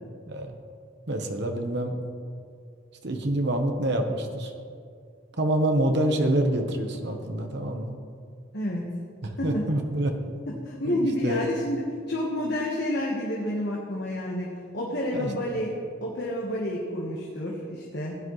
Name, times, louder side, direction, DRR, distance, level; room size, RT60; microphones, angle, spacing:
voice 1, 1.1-2.0 3.0-4.5 5.4-8.0 9.2-10.2 10.8-11.5 15.1-15.3, right 1 dB, 55° right, 4 dB, 1.1 m, -26 dB
voice 2, 10.5-11.8 12.1-15.7 16.0-18.2, left 1 dB, 55° left, -3 dB, 1.4 m, -29 dB
16.0 x 10.0 x 3.2 m, 2.3 s
head